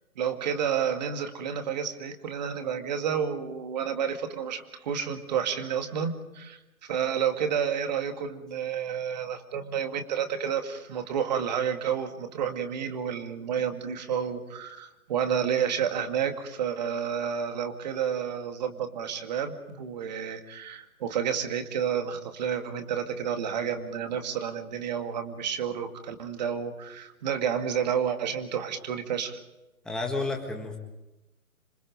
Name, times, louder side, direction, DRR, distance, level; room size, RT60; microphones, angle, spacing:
voice 1, 0.2-6.6 6.9-29.4, right 8 dB, 30° right, 6 dB, 2.2 m, -30 dB
voice 2, 29.8-30.8, left 3 dB, ahead, 1 dB, 1.6 m, -31 dB
27.0 x 24.5 x 5.2 m, 0.97 s
figure-of-eight pair, 155°, 43 cm